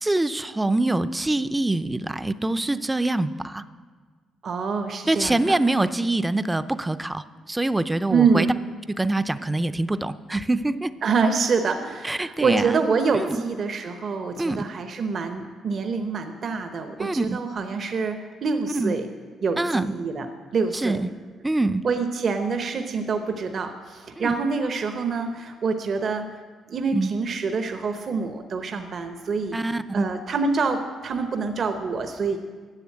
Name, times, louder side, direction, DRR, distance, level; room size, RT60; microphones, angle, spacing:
voice 1, 0.0-3.6 5.1-8.5 9.0-10.9 12.0-12.8 13.1-13.4 14.4-14.7 17.0-17.4 18.7-18.9 19.6-19.9 20.7-21.1 21.4-21.8 24.2-24.3 26.9-27.1 29.5-30.1, right 2 dB, 15° right, 13 dB, 0.5 m, -24 dB
voice 2, 4.4-5.6 8.1-8.5 11.0-19.0 19.4-20.3 20.5-21.0 21.8-26.3 26.7-29.6 29.9-32.4, right 5 dB, 50° right, 6 dB, 0.8 m, -26 dB
10.5 x 7.1 x 8.6 m, 1.5 s
cardioid pair, 90°, 0 cm